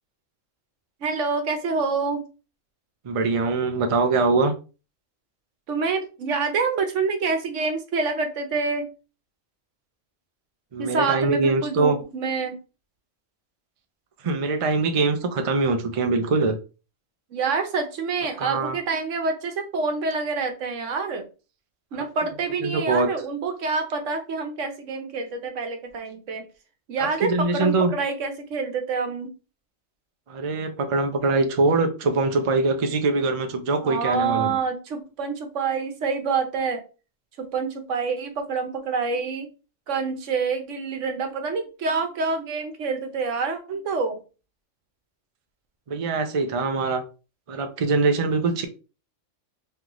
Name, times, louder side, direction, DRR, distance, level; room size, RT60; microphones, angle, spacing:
voice 1, 1.0-2.2 5.7-8.9 10.8-12.5 17.3-21.2 21.9-26.5 26.9-29.3 33.8-36.8 37.4-39.5 39.9-44.2, right 4 dB, 70° right, 6 dB, 1.1 m, -27 dB
voice 2, 3.0-4.5 10.7-12.0 14.2-16.6 18.4-18.8 21.9-22.0 22.6-23.1 27.0-27.9 30.3-34.6 45.9-47.0 47.5-48.7, right 3 dB, 45° right, 6 dB, 0.4 m, -23 dB
3.8 x 3.3 x 2.9 m, 0.33 s
omnidirectional pair, 1.3 m